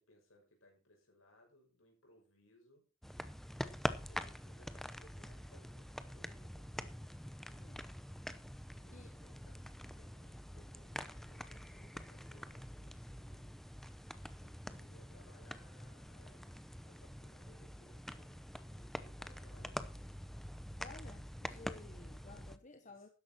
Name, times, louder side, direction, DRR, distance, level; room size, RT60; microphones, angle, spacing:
voice 1, 0.0-2.9 4.0-7.1 8.7-13.9 14.4-20.4 22.8-23.1, left 1 dB, 75° left, 6.1 m, -66 dB
sound 1, 3.0-22.6, equal, ahead, 0.7 m, -46 dB
voice 2, 20.8-23.1, left 3 dB, 35° left, 1.2 m, -55 dB
13.0 x 10.5 x 4.4 m
head